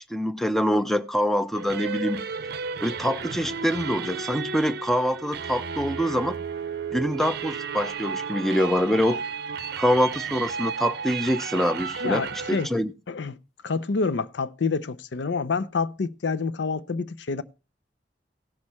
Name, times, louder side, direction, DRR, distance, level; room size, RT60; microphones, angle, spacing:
voice 1, 0.1-2.2 2.8-6.4 6.9-9.2 9.8-12.9, equal, ahead, 0.6 m, -25 dB
sound 1, 1.5-12.7, right 6 dB, 60° right, 0.6 m, -33 dB
voice 2, 12.0-12.7 13.1-13.4 13.6-17.4, left 4 dB, 85° left, 0.5 m, -27 dB
16.5 x 6.4 x 4.2 m
head